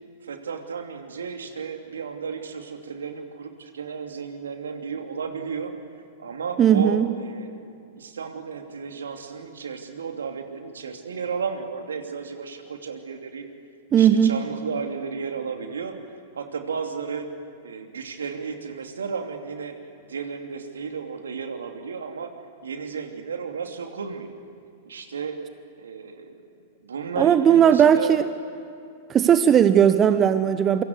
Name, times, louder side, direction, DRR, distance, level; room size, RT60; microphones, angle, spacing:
voice 1, 0.2-5.7 6.2-7.6 7.9-13.4 13.9-16.0 16.4-17.3 17.6-19.8 20.0-22.3 22.6-24.4 24.8-25.4 25.8-26.4 26.8-28.2, right 6 dB, 75° right, 5 dB, 2.8 m, -33 dB
voice 2, 6.6-7.1 13.9-14.3 27.2-28.3 29.1-30.8, right 9 dB, 25° right, 11 dB, 0.9 m, -17 dB
27.5 x 24.5 x 8.1 m, 2.5 s
figure-of-eight pair, 100°, 0 cm